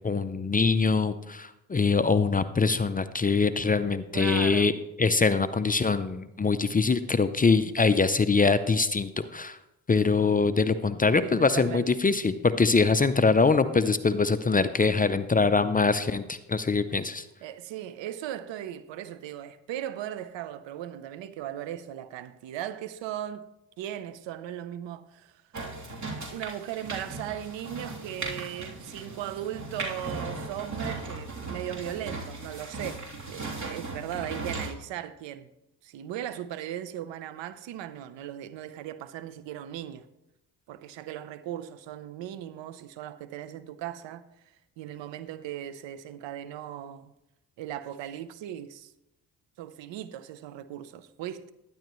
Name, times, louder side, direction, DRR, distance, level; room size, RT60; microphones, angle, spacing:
voice 1, 0.0-4.7 5.0-9.6 9.9-17.3, left 4 dB, 20° left, 0.5 m, -23 dB
voice 2, 4.1-4.7 10.9-12.0 17.4-23.5 23.8-25.4 26.3-35.5 35.8-40.1 40.7-44.2 44.8-47.1 47.6-48.9 49.6-51.5, right 11 dB, 70° right, 0.8 m, -38 dB
sound 1, 25.5-34.7, right 3 dB, 40° right, 3.3 m, -37 dB
12.0 x 10.5 x 3.1 m
supercardioid pair, 75°, 46 cm